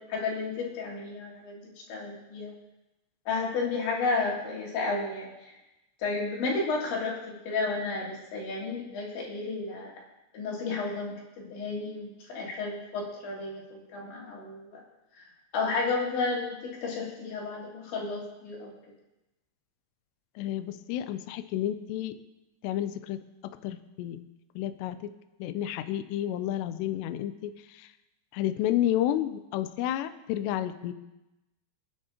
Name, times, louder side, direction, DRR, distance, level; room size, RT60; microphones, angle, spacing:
voice 1, 0.0-1.6 1.9-2.5 3.3-5.3 6.0-9.9 10.3-11.1 11.5-14.8 15.2-15.3 15.5-18.7, left 3 dB, 65° left, -3 dB, 5.0 m, -32 dB
voice 2, 20.4-22.2 22.6-24.2 24.6-25.1 25.4-27.9 28.3-30.9, left 12 dB, 90° left, 11 dB, 2.4 m, -31 dB
27.5 x 10.0 x 2.9 m, 0.98 s
omnidirectional pair, 5.7 m